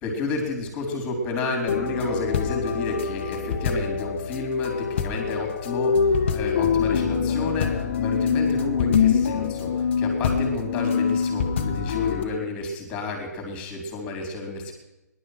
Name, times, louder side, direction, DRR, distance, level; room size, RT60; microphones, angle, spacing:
voice 1, 0.0-14.7, left 3 dB, 15° left, 2 dB, 3.6 m, -31 dB
sound 1, 1.7-12.2, left 6 dB, 40° left, 1.3 m, -24 dB
18.0 x 11.5 x 6.4 m, 1.0 s
hypercardioid pair, 160°, 9 cm